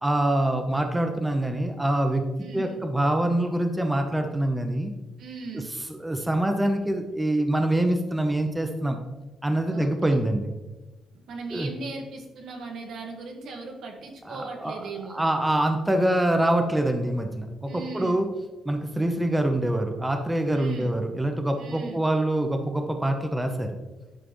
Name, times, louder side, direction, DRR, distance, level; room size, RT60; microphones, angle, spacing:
voice 1, 0.0-2.3 2.5-4.9 5.5-5.6 5.9-9.0 9.4-10.5 11.5-11.7 14.3-18.3 18.7-23.8, right 1 dB, 10° right, 5 dB, 0.9 m, -25 dB
voice 2, 2.4-2.8 5.2-5.7 9.7-10.2 11.3-15.2 17.7-18.2 20.5-20.9 21.6-22.0, right 4 dB, 75° right, 2 dB, 1.6 m, -38 dB
11.5 x 4.9 x 3.1 m, 1.1 s
cardioid pair, 80°, 0 cm